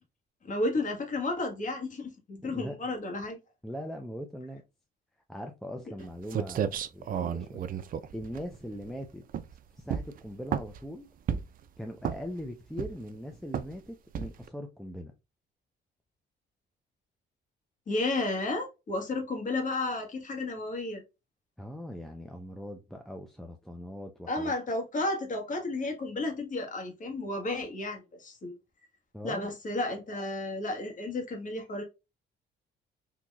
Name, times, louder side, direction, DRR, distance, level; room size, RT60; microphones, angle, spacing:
voice 1, 0.5-3.4 17.9-21.0 24.3-28.5 29.2-31.8, left 2 dB, 45° left, 1.4 m, -32 dB
voice 2, 2.4-2.7 3.6-4.6 5.3-7.6 8.1-9.2 9.8-11.1 11.8-15.1 21.6-24.5 29.1-29.5, equal, ahead, 0.5 m, -40 dB
sound 1, 6.0-6.1 6.3-8.9 9.3-9.6 9.9-10.9 11.3-11.6 12.0-12.4 12.8-13.2 13.5-13.8 14.2-14.5, right 8 dB, 50° right, 0.4 m, -32 dB
3.9 x 2.8 x 2.3 m
cardioid pair, 95°, 19 cm